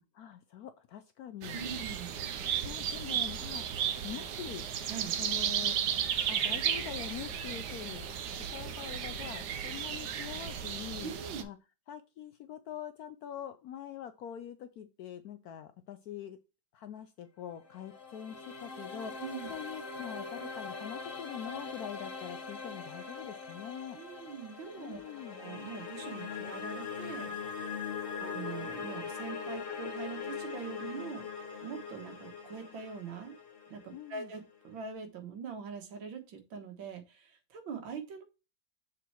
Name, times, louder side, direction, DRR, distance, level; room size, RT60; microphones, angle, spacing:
voice 1, 0.2-1.8 2.6-4.7 5.2-5.8 6.3-8.0 8.5-11.1 11.4-11.6 11.9-16.4 16.7-19.2 19.5-24.0 24.8-25.4 33.9-34.3, left 10 dB, 75° left, 9 dB, 0.9 m, -44 dB
sound 1, 1.4-11.4, right 9 dB, 65° right, 1.2 m, -34 dB
voice 2, 1.5-2.1 4.8-5.2 11.0-11.4 19.2-19.5 23.9-25.0 25.3-27.3 28.2-31.2 31.6-33.3 33.7-38.2, right 6 dB, 90° right, 6 dB, 2.0 m, -43 dB
sound 2, 17.5-34.6, left 5 dB, 40° left, 0.9 m, -42 dB
6.8 x 3.7 x 4.3 m, 0.29 s
omnidirectional pair, 2.1 m